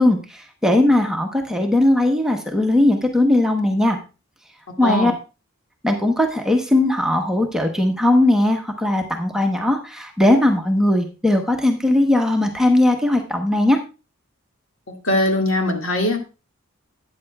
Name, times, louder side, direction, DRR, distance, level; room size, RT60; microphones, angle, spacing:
voice 1, 0.0-4.0 4.8-5.1 5.8-13.8, left 1 dB, 5° right, 2 dB, 0.9 m, -18 dB
voice 2, 4.7-5.1 14.9-16.2, left 1 dB, 70° left, 3 dB, 1.9 m, -21 dB
12.5 x 8.7 x 2.3 m, 0.30 s
head